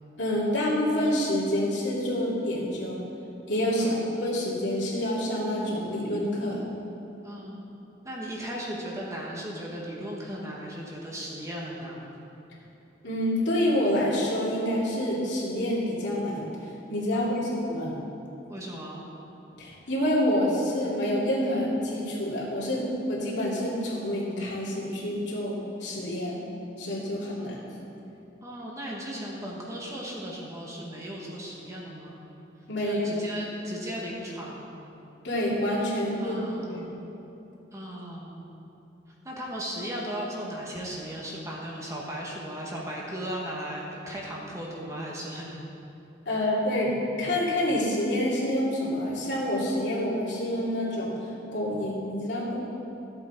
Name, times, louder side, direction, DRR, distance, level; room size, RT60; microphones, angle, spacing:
voice 1, 0.2-3.0 3.5-6.6 13.0-16.5 16.9-17.9 19.6-25.5 25.8-26.4 26.8-27.6 32.7-33.1 35.2-36.4 36.7-36.9 46.3-46.9 47.2-52.6, left 1 dB, 70° left, -6 dB, 2.7 m, -27 dB
voice 2, 3.7-4.1 7.2-7.6 8.0-12.1 17.1-17.4 18.5-19.0 27.4-27.5 28.4-32.2 32.8-34.7 36.2-37.0 37.7-38.4 39.2-45.6 46.3-46.4, equal, 15° right, -3 dB, 1.4 m, -36 dB
13.5 x 8.1 x 4.5 m, 2.9 s
head